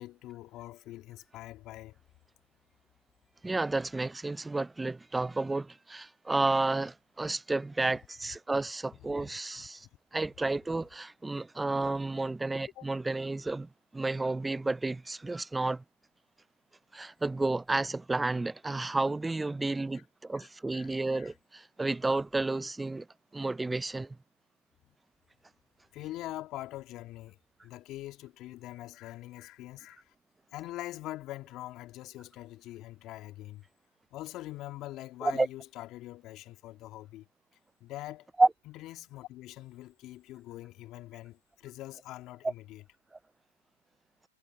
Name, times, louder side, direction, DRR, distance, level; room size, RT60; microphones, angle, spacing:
voice 1, 0.0-2.0 8.9-9.1 9.6-9.9 12.8-12.9 19.9-20.0 20.3-21.3 24.8-24.9 25.9-27.4 27.6-30.1 30.5-33.6 34.1-37.3 37.8-38.3 38.7-42.8, left 16 dB, 35° left, 2.3 m, -44 dB
voice 2, 3.4-9.9 10.1-15.8 16.9-23.1 23.3-24.2 35.2-35.5 38.4-38.5, right 2 dB, 5° right, 0.4 m, -31 dB
hypercardioid pair, 115°, 0 cm